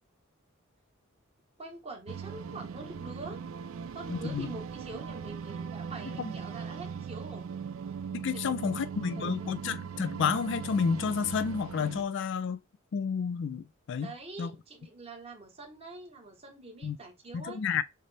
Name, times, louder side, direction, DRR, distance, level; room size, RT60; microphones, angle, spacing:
voice 1, 1.6-3.4 3.9-7.4 8.3-9.6 14.0-17.6, right 2 dB, 30° right, 1.1 m, -45 dB
sound 1, 2.1-12.0, right 6 dB, 65° right, 0.3 m, -39 dB
voice 2, 4.1-4.5 8.1-12.6 12.9-14.1 14.4-14.5 16.8-17.0 17.3-17.8, left 6 dB, 55° left, 0.3 m, -30 dB
6.4 x 2.1 x 3.3 m
head